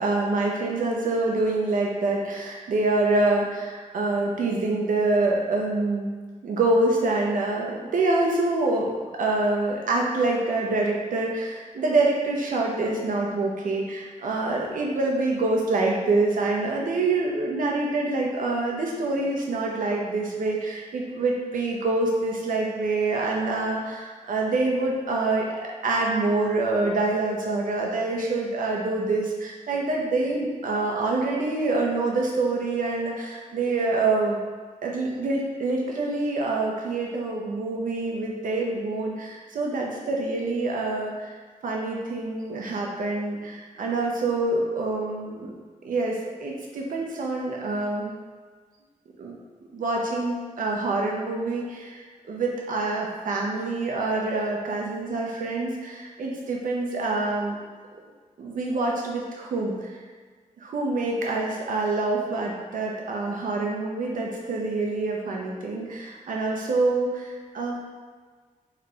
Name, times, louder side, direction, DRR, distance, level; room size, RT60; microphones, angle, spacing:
voice 1, 0.0-25.5 25.8-34.4 34.8-41.4 41.6-45.5 45.8-48.1 49.2-49.4 49.7-57.6 58.4-60.0 60.6-67.8, right 2 dB, 85° right, -1 dB, 0.8 m, -26 dB
3.4 x 3.3 x 3.8 m, 1.5 s
wide cardioid pair, 170°, 14 cm